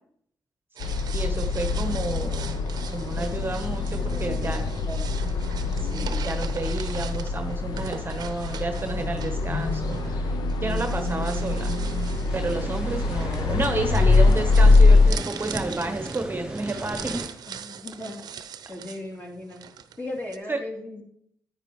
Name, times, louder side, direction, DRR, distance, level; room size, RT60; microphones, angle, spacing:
sound 1, 0.8-15.1, left 3 dB, 75° left, 0.7 m, -23 dB
voice 1, 0.8-2.5 2.9-4.7 5.8-11.8 12.3-17.2 20.5-20.6, right 2 dB, 30° right, 6 dB, 1.0 m, -31 dB
sound 2, 0.8-20.4, right 8 dB, 70° right, 0.6 m, -41 dB
voice 2, 3.1-3.5 3.9-5.1 17.5-18.2 18.7-19.6 20.0-21.0, left 1 dB, 25° left, 0 dB, 3.0 m, -37 dB
sound 3, 12.3-17.3, right 1 dB, 10° right, 3.4 m, -37 dB
10.0 x 9.1 x 3.1 m, 0.70 s
supercardioid pair, 50°, 7 cm